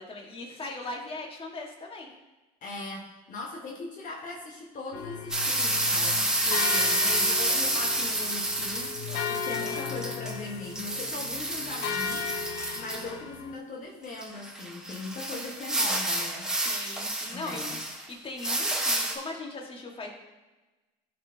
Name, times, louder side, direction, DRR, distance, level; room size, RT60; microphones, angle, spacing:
voice 1, 0.0-2.1 16.6-17.6 18.1-20.1, left 2 dB, 30° left, 0 dB, 1.8 m, -39 dB
voice 2, 2.6-12.3 12.7-16.5 17.3-17.8, left 3 dB, 45° left, -1 dB, 1.4 m, -40 dB
sound 1, 4.9-13.6, left 6 dB, 70° left, 0.8 m, -36 dB
sound 2, 5.3-10.4 10.7-13.1 14.2-18.1 18.4-19.2, right 1 dB, 5° right, 1.3 m, -29 dB
12.0 x 4.4 x 2.9 m, 1.1 s
supercardioid pair, 85°, 18 cm